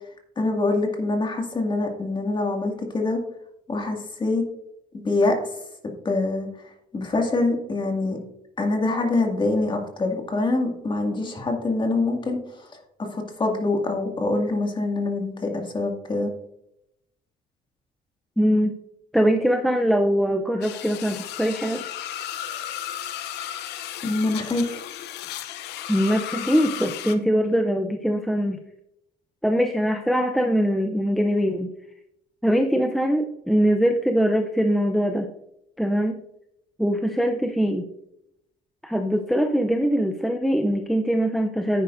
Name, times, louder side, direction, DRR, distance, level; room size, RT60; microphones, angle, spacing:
voice 1, 0.4-3.2 3.7-4.5 4.9-5.4 6.0-8.2 8.6-12.7 13.0-16.3 24.0-24.8, left 2 dB, 30° left, 2 dB, 2.2 m, -25 dB
voice 2, 18.4-18.8 19.1-21.9 25.9-28.6 29.4-31.7 32.4-35.3 35.8-36.2 36.8-37.9 38.8-41.8, equal, ahead, 4 dB, 0.6 m, -22 dB
sound 1, 20.6-27.1, left 11 dB, 85° left, 0.8 m, -34 dB
10.0 x 9.5 x 2.6 m, 0.80 s
cardioid pair, 110°, 17 cm